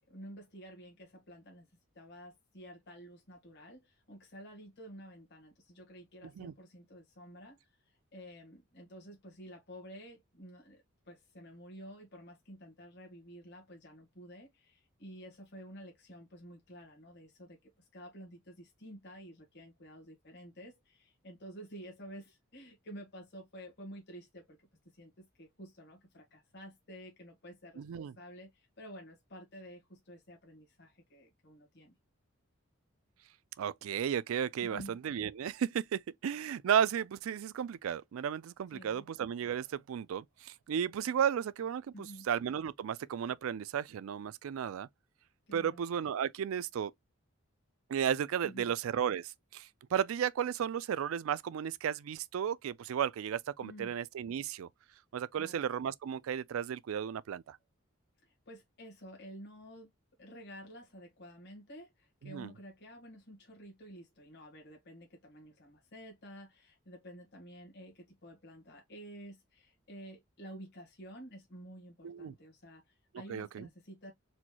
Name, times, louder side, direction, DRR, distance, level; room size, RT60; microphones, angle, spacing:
voice 1, 0.0-1.7 1.9-7.6 8.1-24.6 24.9-31.9 34.6-35.0 38.7-39.0 41.9-42.3 45.5-45.8 48.4-48.7 53.6-53.9 55.4-55.6 58.2-59.9 60.2-74.1, equal, 55° left, 1.5 m, -51 dB
voice 2, 27.8-28.1 33.6-44.9 45.5-46.9 47.9-54.7 55.1-57.6 62.2-62.5 72.0-72.3 73.3-73.7, right 8 dB, 70° right, 0.3 m, -34 dB
4.2 x 3.0 x 2.2 m
head